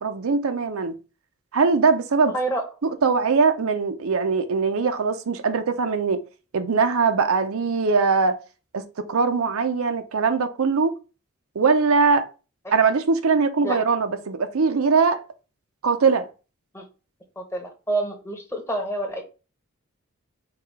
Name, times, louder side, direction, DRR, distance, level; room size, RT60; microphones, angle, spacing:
voice 1, 0.0-1.0 1.5-2.3 2.8-6.2 6.5-8.4 8.7-8.8 9.1-10.9 11.6-12.3 12.7-15.2 15.8-16.3, right 4 dB, 80° right, 0.6 m, -21 dB
voice 2, 17.4-19.2, right 2 dB, 15° left, 1.0 m, -28 dB
4.7 x 2.4 x 4.7 m
head